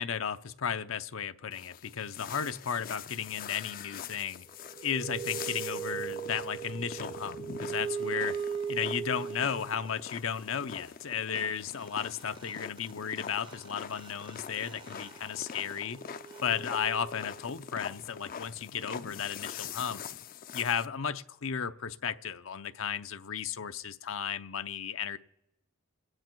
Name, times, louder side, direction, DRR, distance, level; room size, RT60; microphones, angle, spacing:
voice 1, 0.0-4.5 4.8-8.4 8.7-16.0 16.4-20.0 20.5-25.2, left 7 dB, 80° left, 10 dB, 0.7 m, -34 dB
sound 1, 1.5-20.9, left 7 dB, 45° left, 0.4 m, -44 dB
sound 2, 4.5-9.9 11.8-11.9 12.1-17.6, right 7 dB, 25° right, 0.6 m, -39 dB
28.5 x 9.8 x 4.6 m, 0.92 s
head